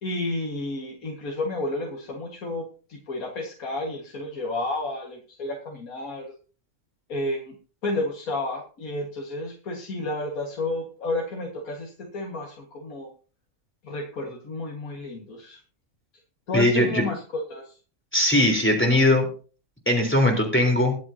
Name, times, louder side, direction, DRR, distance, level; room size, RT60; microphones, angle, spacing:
voice 1, 0.0-6.3 7.1-7.6 7.8-13.1 13.8-15.6 16.5-17.7, left 2 dB, 90° left, 0 dB, 2.2 m, -31 dB
voice 2, 16.5-17.0 18.1-19.3 19.9-20.9, left 1 dB, 10° left, 1 dB, 3.8 m, -20 dB
22.0 x 7.7 x 2.8 m, 0.38 s
omnidirectional pair, 1.5 m